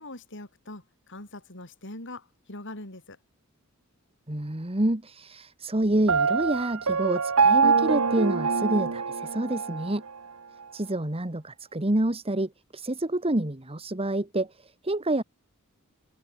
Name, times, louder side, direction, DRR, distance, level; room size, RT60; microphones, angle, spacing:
voice 1, 0.0-3.2, left 2 dB, 60° left, 7.6 m, -42 dB
voice 2, 4.3-10.0 10.7-15.2, right 1 dB, 25° right, 1.7 m, -28 dB
Piano, 6.1-9.9, right 5 dB, 75° right, 1.1 m, -24 dB
head